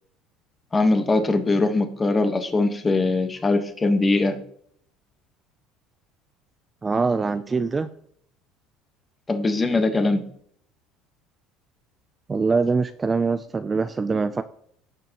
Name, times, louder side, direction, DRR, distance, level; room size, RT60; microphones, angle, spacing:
voice 1, 0.7-4.4 9.3-10.3, left 2 dB, 20° left, 7 dB, 1.2 m, -21 dB
voice 2, 6.8-7.9 12.3-14.4, right 4 dB, 20° right, 11 dB, 0.4 m, -23 dB
16.5 x 6.7 x 3.0 m, 0.65 s
cardioid pair, 125°, 0 cm